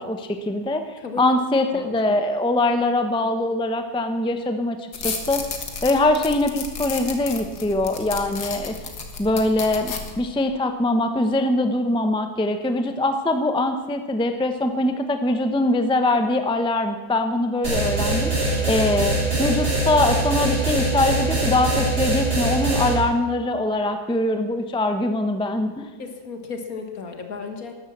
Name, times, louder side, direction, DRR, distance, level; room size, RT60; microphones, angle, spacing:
voice 1, 0.0-0.8 1.2-4.8 5.0-5.4 5.8-8.8 9.2-25.9, left 2 dB, 5° left, 7 dB, 0.7 m, -22 dB
voice 2, 1.0-1.4 1.7-2.2 26.0-27.8, left 4 dB, 65° left, 5 dB, 2.1 m, -34 dB
sound 1, 4.9-10.2, left 5 dB, 90° left, 2.2 m, -33 dB
sound 2, 17.6-22.9, right 1 dB, 85° right, 5.1 m, -22 dB
13.0 x 12.0 x 7.4 m, 1.3 s
omnidirectional pair, 1.7 m